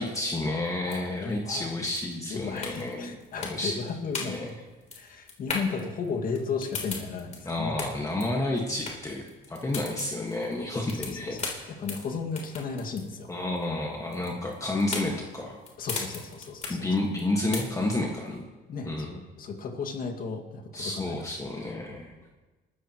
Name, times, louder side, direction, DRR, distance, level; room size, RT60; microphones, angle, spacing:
voice 1, 0.0-3.7 4.2-4.5 7.4-11.4 13.3-15.6 16.7-18.4 18.9-19.2 20.7-22.1, left 2 dB, 20° left, -1 dB, 1.7 m, -30 dB
sound 1, 0.6-18.1, left 4 dB, 40° left, 3.4 m, -38 dB
voice 2, 0.8-1.7 2.3-4.5 4.9-7.8 10.9-11.4 11.7-13.3 15.8-16.8 18.7-21.2 21.6-21.7, left 5 dB, 55° left, 3 dB, 2.1 m, -34 dB
27.5 x 13.5 x 3.1 m, 1.2 s
cardioid pair, 110°, 17 cm